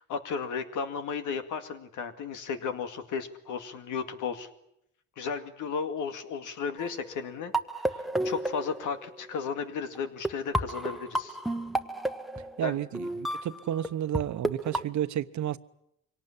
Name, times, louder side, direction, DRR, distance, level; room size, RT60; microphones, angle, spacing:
voice 1, 0.1-4.5 5.2-7.5 7.9-11.4 12.6-12.8, left 6 dB, 80° left, 2.3 m, -34 dB
sound 1, 6.8-9.3 9.9-10.0 10.2-14.2 14.4-14.8, right 1 dB, ahead, 1.2 m, -32 dB
voice 2, 12.6-15.6, right 11 dB, 70° right, 1.1 m, -31 dB
24.0 x 18.0 x 10.0 m
cardioid pair, 90°, 30 cm